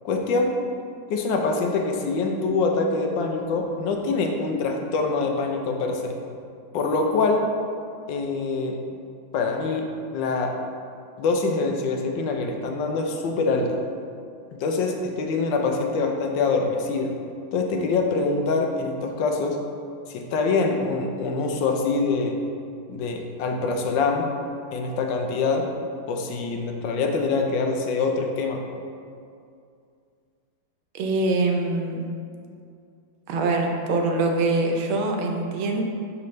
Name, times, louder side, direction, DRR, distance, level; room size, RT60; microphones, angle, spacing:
voice 1, 0.0-0.5 1.1-6.1 6.7-7.5 8.1-8.8 9.3-9.9 10.1-10.6 11.2-13.8 14.5-17.1 17.5-19.6 20.1-22.4 22.9-24.3 24.7-25.7 26.1-28.6, left 3 dB, 75° left, 3 dB, 1.3 m, -24 dB
voice 2, 30.9-32.1 33.3-35.8, right 2 dB, 85° right, 3 dB, 1.5 m, -24 dB
6.0 x 5.7 x 3.1 m, 2.4 s
omnidirectional pair, 2.2 m